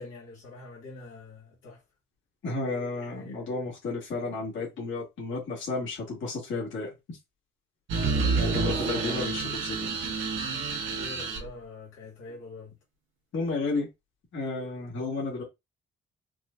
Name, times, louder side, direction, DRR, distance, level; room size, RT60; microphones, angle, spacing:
voice 1, 0.0-1.8 3.0-3.5 7.9-9.5 10.9-12.7, left 3 dB, 90° left, 1.8 m, -45 dB
voice 2, 2.4-6.9 8.3-9.9 13.3-13.9 14.3-15.4, left 3 dB, 70° left, 1.8 m, -32 dB
sound 1, 7.9-11.5, right 4 dB, 80° right, 1.1 m, -28 dB
4.7 x 2.2 x 2.5 m
cardioid pair, 90°, 20 cm